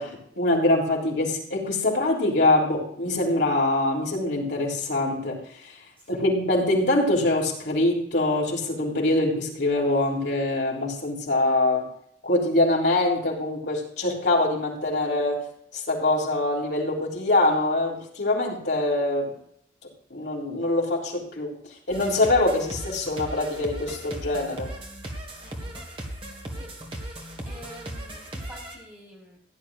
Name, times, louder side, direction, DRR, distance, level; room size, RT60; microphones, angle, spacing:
voice 1, 0.0-5.8 6.1-11.9 12.2-15.4 15.7-19.4 20.1-21.5 21.9-24.7, left 2 dB, 65° left, -3 dB, 3.5 m, -24 dB
sound 1, 21.9-28.8, right 1 dB, 30° right, 1.8 m, -37 dB
voice 2, 25.4-25.8 26.5-29.4, equal, 10° right, -4 dB, 4.4 m, -48 dB
16.0 x 10.5 x 2.6 m, 0.70 s
head